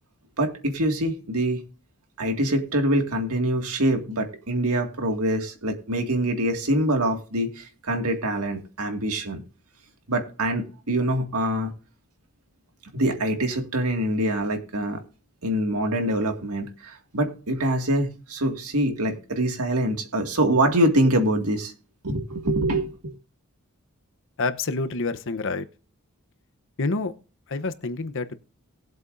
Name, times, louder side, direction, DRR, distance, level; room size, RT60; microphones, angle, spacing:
voice 1, 0.4-1.6 2.2-9.4 10.1-11.7 12.9-15.0 15.4-21.7 22.0-23.1, right 1 dB, 80° right, 2.0 m, -24 dB
voice 2, 24.4-25.7 26.8-27.1 27.5-28.4, left 3 dB, 60° left, 0.9 m, -27 dB
19.5 x 7.8 x 2.6 m
head